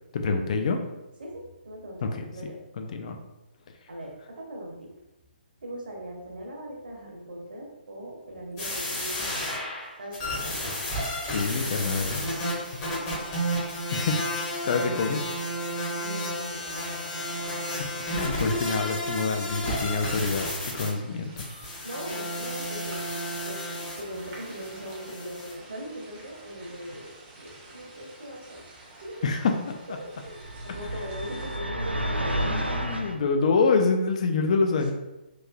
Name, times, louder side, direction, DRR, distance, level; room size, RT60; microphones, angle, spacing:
voice 1, 0.1-0.8 2.0-2.2 2.8-3.2 11.3-12.2 12.7-12.8 13.9-15.3 17.7-20.5 20.7-21.5 29.2-29.5 29.9-30.0 32.4-34.9, left 4 dB, 40° left, 5 dB, 0.3 m, -26 dB
voice 2, 1.2-2.6 3.9-4.9 5.6-9.6 10.0-10.6 12.7-13.1 16.0-17.5 21.8-23.6 24.0-29.3 30.0-32.6, equal, 60° right, 0 dB, 0.8 m, -40 dB
sound 1, 8.6-20.9 21.4-25.5, equal, 20° left, 0.8 m, -32 dB
sound 2, 12.1-31.6, right 2 dB, 25° right, 0.6 m, -48 dB
sound 3, 30.3-33.2, equal, 85° right, 0.4 m, -30 dB
3.1 x 2.5 x 2.3 m, 0.99 s
figure-of-eight pair, 130°, 6 cm